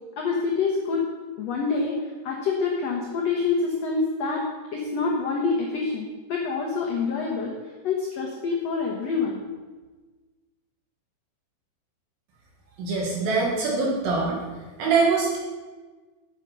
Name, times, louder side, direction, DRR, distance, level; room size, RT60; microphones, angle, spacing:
voice 1, 0.2-1.0 1.4-4.4 4.7-7.5 7.8-9.4, left 4 dB, 85° left, -2 dB, 1.4 m, -26 dB
voice 2, 12.8-14.4 14.8-15.4, right 4 dB, 65° right, -3 dB, 3.2 m, -23 dB
8.5 x 8.2 x 5.5 m, 1.3 s
omnidirectional pair, 4.7 m